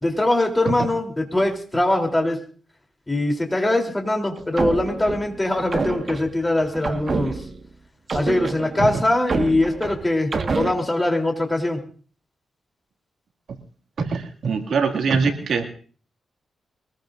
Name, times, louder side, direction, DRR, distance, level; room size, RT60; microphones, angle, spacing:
voice 1, 0.0-2.4 3.1-7.4 8.1-11.8, left 1 dB, 15° left, 2 dB, 3.4 m, -22 dB
sound 1, 4.4-7.7 8.1-10.7, right 4 dB, 50° right, 1.6 m, -28 dB
voice 2, 14.0-15.7, right 5 dB, 75° right, 3 dB, 2.3 m, -23 dB
23.5 x 20.0 x 2.6 m, 0.42 s
cardioid pair, 80°, 0 cm